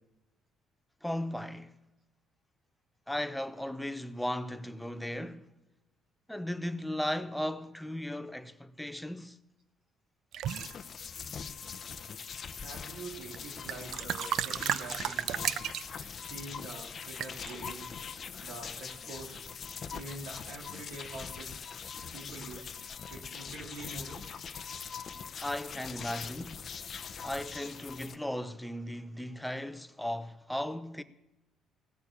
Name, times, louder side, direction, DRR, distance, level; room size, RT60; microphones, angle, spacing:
voice 1, 1.0-1.8 3.1-5.5 6.3-9.4 25.4-26.7 27.2-31.0, left 1 dB, 5° left, 0.7 m, -36 dB
sound 1, 10.3-10.7 11.5-12.0 13.3-13.4 13.6-16.1 17.2-17.5, right 11 dB, 65° right, 0.4 m, -33 dB
sound 2, 10.5-28.2, left 6 dB, 45° left, 0.8 m, -42 dB
voice 2, 12.6-15.6 15.9-18.0 18.4-19.5 19.9-22.7 23.1-24.2, right 2 dB, 80° right, 2.9 m, -45 dB
17.5 x 6.8 x 8.7 m
cardioid pair, 105°, 0 cm